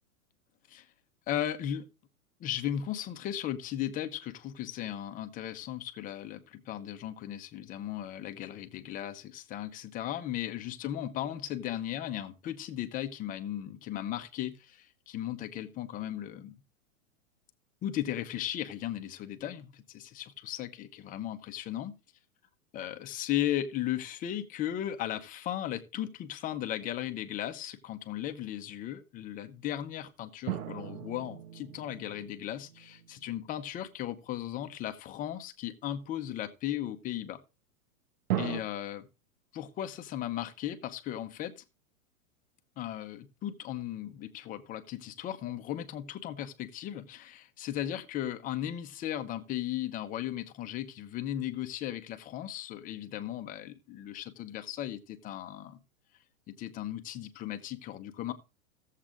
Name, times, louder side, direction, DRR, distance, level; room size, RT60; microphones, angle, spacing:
voice 1, 1.3-1.9 2.4-16.6 17.8-21.9 22.7-37.4 38.4-39.0 39.5-41.5 42.8-55.8 56.5-58.3, left 12 dB, 20° left, 0.6 m, -36 dB
sound 1, 30.5-33.4 38.3-38.6, right 12 dB, 85° right, 1.0 m, -37 dB
16.5 x 7.4 x 2.5 m
hypercardioid pair, 140°, 43 cm